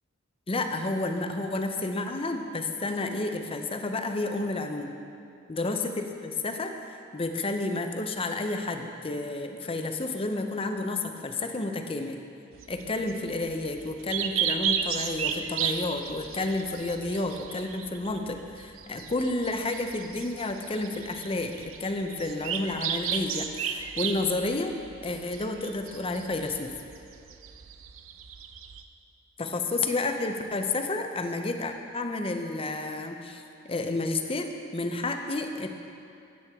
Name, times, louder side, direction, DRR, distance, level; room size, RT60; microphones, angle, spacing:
voice 1, 0.5-4.9 5.5-12.2 12.7-24.8 25.0-26.7 29.4-35.7, left 2 dB, 25° left, 5 dB, 0.6 m, -31 dB
sound 1, 12.5-28.8, right 8 dB, 75° right, 0.6 m, -34 dB
13.5 x 8.5 x 3.6 m, 2.6 s
head